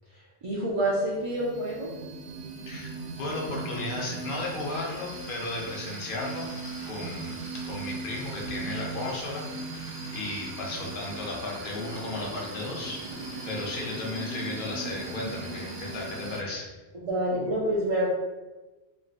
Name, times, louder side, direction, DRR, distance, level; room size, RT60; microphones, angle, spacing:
voice 1, 0.4-1.9 7.0-7.1 16.9-18.1, right 1 dB, 45° right, -6 dB, 0.5 m, -27 dB
sound 1, 0.6-16.4, right 2 dB, 70° right, 0.8 m, -38 dB
voice 2, 2.7-6.5 6.9-13.0 13.4-16.7, left 2 dB, 60° left, -2 dB, 0.9 m, -35 dB
3.2 x 2.7 x 2.4 m, 1.2 s
omnidirectional pair, 1.1 m